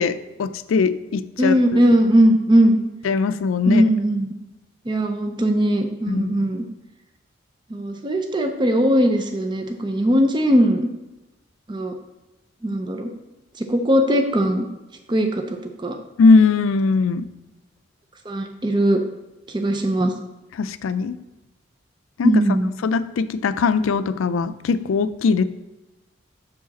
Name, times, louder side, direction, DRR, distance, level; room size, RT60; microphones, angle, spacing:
voice 1, 0.0-1.5 3.0-3.8 6.1-6.4 16.2-17.3 20.6-21.2 22.2-22.3 22.8-25.4, left 4 dB, 85° left, 13 dB, 0.4 m, -20 dB
voice 2, 1.4-2.8 3.6-4.3 4.9-6.6 7.7-10.9 11.7-11.9 12.6-13.1 13.6-14.7 15.1-15.4 15.8-16.0 18.3-19.0 19.5-20.1 22.2-22.7, equal, 25° right, 5 dB, 0.5 m, -19 dB
6.5 x 4.8 x 4.0 m, 1.0 s
head